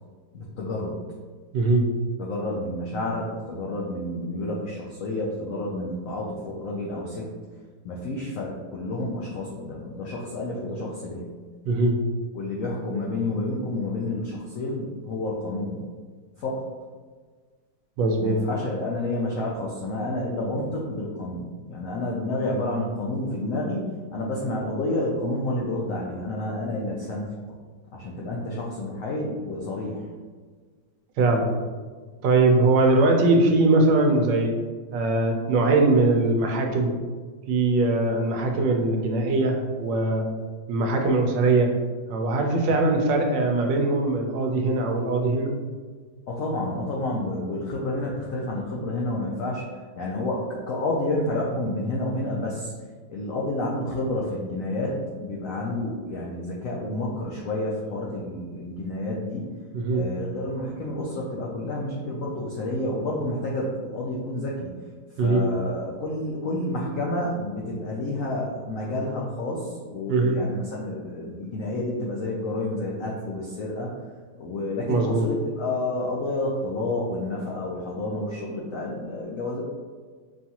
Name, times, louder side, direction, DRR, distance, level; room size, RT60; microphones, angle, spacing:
voice 1, 0.3-1.0 2.2-7.3 7.8-11.3 12.3-15.8 16.4-16.7 18.2-27.3 27.9-30.1 46.3-49.6 50.0-52.7 53.1-59.5 59.9-64.7 65.2-73.9 74.4-79.6, left 1 dB, 85° left, -3 dB, 0.7 m, -29 dB
voice 2, 1.5-1.9 11.7-12.0 18.0-18.4 31.2-31.5 32.2-34.6 34.9-36.9 37.5-40.3 40.7-41.7 42.1-45.6 59.7-60.0 65.2-65.4 70.1-70.4 74.9-75.3, right 2 dB, 75° right, 2 dB, 1.2 m, -21 dB
5.4 x 2.4 x 2.8 m, 1.5 s
omnidirectional pair, 2.0 m